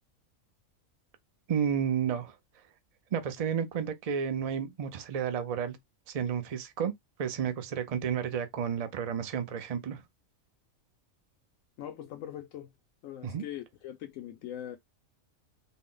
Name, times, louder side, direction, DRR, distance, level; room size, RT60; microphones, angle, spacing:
voice 1, 1.5-2.4 3.1-5.8 6.1-6.9 7.2-10.0 13.2-13.4, right 8 dB, 65° right, 0.3 m, -31 dB
voice 2, 11.8-12.7 13.0-14.8, left 11 dB, 80° left, 1.0 m, -41 dB
3.9 x 2.0 x 3.8 m
omnidirectional pair, 1.4 m